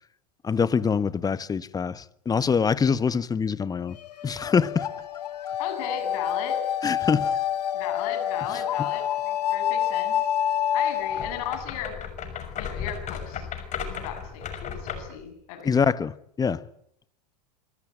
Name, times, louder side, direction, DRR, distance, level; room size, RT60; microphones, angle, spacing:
voice 1, 0.4-4.0 4.2-4.9 6.8-7.4 15.6-16.6, left 6 dB, 20° left, 1.1 m, -24 dB
sound 1, 4.0-11.6, left 10 dB, 75° left, 2.0 m, -28 dB
voice 2, 5.6-6.6 7.7-10.2 10.7-11.9 12.5-13.5 13.9-15.8, left 8 dB, 60° left, 7.8 m, -36 dB
sound 2, 11.1-15.2, left 7 dB, 35° left, 6.2 m, -35 dB
25.5 x 24.0 x 9.0 m
hypercardioid pair, 95°, 21 cm